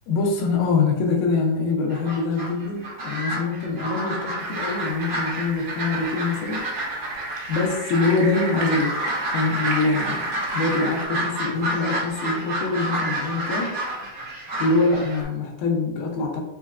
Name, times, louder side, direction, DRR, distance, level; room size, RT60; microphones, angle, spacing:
voice 1, 0.1-6.6 7.5-9.0 9.3-13.8 14.6-16.4, left 3 dB, 80° left, 0 dB, 2.2 m, -24 dB
sound 1, 1.9-15.2, right 1 dB, 65° right, 1.3 m, -29 dB
sound 2, 4.4-11.1, right 2 dB, 80° right, 2.6 m, -35 dB
6.3 x 2.2 x 2.3 m, 0.99 s
omnidirectional pair, 4.7 m